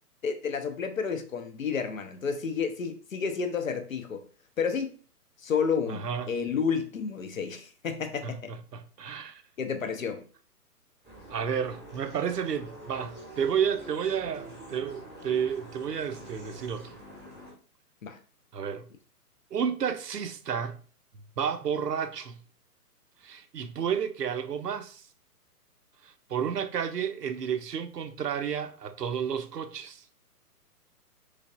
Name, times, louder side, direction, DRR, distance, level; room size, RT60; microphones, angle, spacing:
voice 1, 0.2-4.2 4.6-4.9 5.4-8.5 9.6-10.2 18.0-18.2, left 6 dB, 60° left, 0.6 m, -30 dB
voice 2, 5.9-6.4 8.2-9.4 11.3-17.0 18.5-18.9 19.5-20.8 21.4-22.4 23.2-25.0 26.0-30.0, right 7 dB, 80° right, 0.5 m, -31 dB
sound 1, 11.0-17.5, right 1 dB, ahead, 0.9 m, -46 dB
3.3 x 3.2 x 2.4 m
figure-of-eight pair, 130°, 47 cm